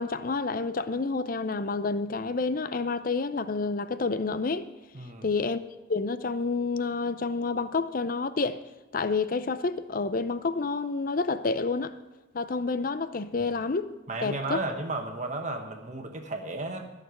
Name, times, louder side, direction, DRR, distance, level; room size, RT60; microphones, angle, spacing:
voice 1, 0.0-4.7 5.2-5.6 5.9-8.6 8.9-11.9 12.3-13.9 14.2-14.6, left 4 dB, 45° left, 0.5 m, -29 dB
voice 2, 4.9-5.3 14.1-16.9, right 2 dB, 35° right, 1.2 m, -33 dB
14.0 x 6.7 x 7.7 m
head